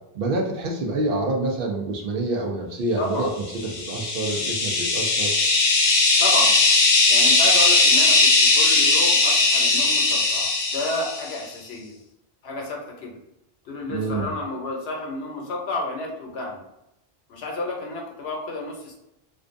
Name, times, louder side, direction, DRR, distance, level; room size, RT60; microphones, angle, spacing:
voice 1, 0.1-3.3 3.6-5.3 13.9-14.3, right 2 dB, 65° right, 0 dB, 0.7 m, -27 dB
voice 2, 3.0-3.3 6.2-6.6 7.1-11.9 12.4-13.2 13.6-16.6 17.3-18.9, left 2 dB, 80° left, 0 dB, 0.9 m, -31 dB
sound 1, 3.6-11.4, left 3 dB, 55° left, 0.5 m, -19 dB
2.5 x 2.2 x 2.4 m, 0.87 s
omnidirectional pair, 1.0 m